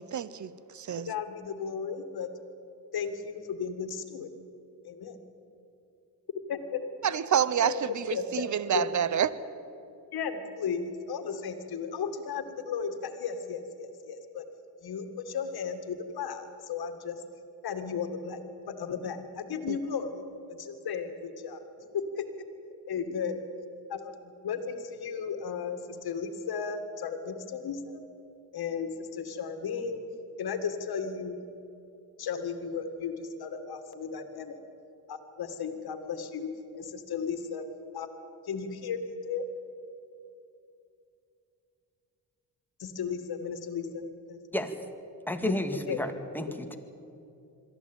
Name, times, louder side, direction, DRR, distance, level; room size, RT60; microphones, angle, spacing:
voice 1, 0.0-1.1 7.0-9.3 19.7-19.8, right 9 dB, 50° right, 16 dB, 1.0 m, -28 dB
voice 2, 1.0-2.3 2.9-4.3 4.8-5.2 6.5-6.8 7.6-7.8 8.1-8.9 10.1-14.5 14.8-17.2 17.6-18.4 18.7-20.2 20.5-21.6 21.9-22.3 22.9-23.4 23.9-28.0 28.5-30.0 30.4-31.4 32.2-34.6 35.1-37.7 37.9-38.2 38.4-39.5 42.8-44.4 45.4-45.6 45.9-46.0 46.5-46.8, left 6 dB, 70° left, 8 dB, 2.2 m, -35 dB
voice 3, 45.3-46.8, equal, 5° left, 5 dB, 2.1 m, -32 dB
22.5 x 14.0 x 9.1 m, 2.7 s
cardioid pair, 80°, 38 cm